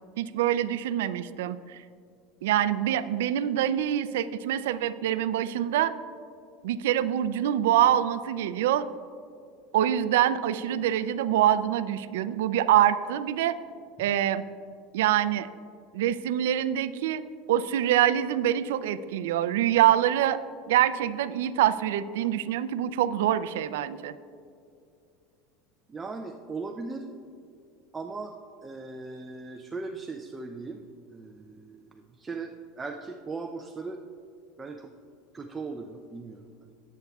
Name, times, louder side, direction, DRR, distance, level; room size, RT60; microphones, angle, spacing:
voice 1, 0.2-1.8 2.4-5.9 6.6-8.9 9.7-13.6 14.0-14.4 14.9-15.5 15.9-17.2 17.5-20.4 20.7-24.1, right 11 dB, 90° right, 14 dB, 0.4 m, -25 dB
voice 2, 25.9-27.1 27.9-28.3 28.6-30.8 31.1-34.0 34.6-34.9 35.3-36.4, right 3 dB, 15° right, 4 dB, 0.4 m, -38 dB
17.0 x 8.3 x 2.3 m, 2.4 s
supercardioid pair, 150°, 0 cm